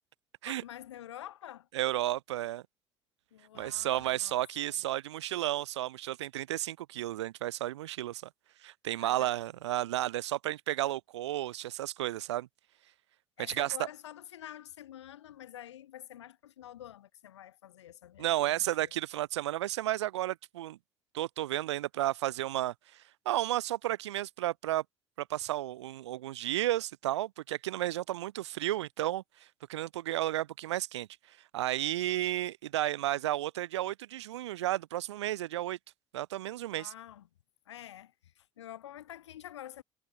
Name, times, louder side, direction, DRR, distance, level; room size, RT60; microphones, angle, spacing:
voice 1, 0.4-1.7 3.3-4.7 9.0-9.3 13.4-18.9 36.7-37.3 37.7-39.8, left 12 dB, 75° left, 0.9 m, -48 dB
voice 2, 1.7-2.6 3.5-8.2 8.6-12.5 13.5-13.7 18.2-20.8 21.1-22.7 23.3-24.8 25.2-29.2 29.7-31.1 31.5-35.8 36.1-36.9, right 14 dB, 75° right, 0.6 m, -32 dB
figure-of-eight pair, 55°, 15 cm